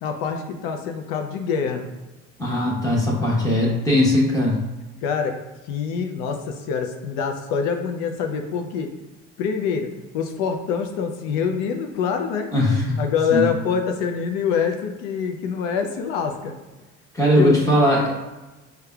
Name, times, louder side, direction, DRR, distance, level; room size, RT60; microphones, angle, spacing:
voice 1, 0.0-1.9 5.0-5.4 5.7-8.9 9.4-12.5 13.0-16.5 17.3-17.5, left 6 dB, 90° left, 4 dB, 0.5 m, -25 dB
voice 2, 2.4-4.6 12.5-13.0 13.3-13.5 17.1-18.3, left 1 dB, 10° left, -5 dB, 1.1 m, -19 dB
4.8 x 2.3 x 2.3 m, 1.1 s
cardioid pair, 105°, 33 cm